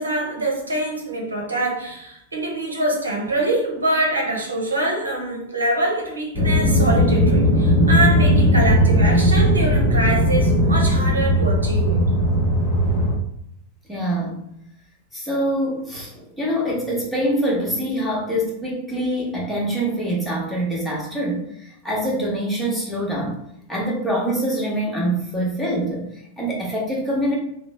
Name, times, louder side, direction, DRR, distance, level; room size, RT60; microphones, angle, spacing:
voice 1, 0.0-12.1, right 2 dB, 75° right, -1 dB, 0.8 m, -24 dB
sound 1, 6.3-13.1, equal, 25° left, 1.0 m, -17 dB
voice 2, 13.9-14.4 15.1-23.4 23.7-27.4, right 1 dB, 5° left, -5 dB, 1.0 m, -25 dB
3.0 x 2.0 x 3.3 m, 0.74 s
figure-of-eight pair, 90°, 0 cm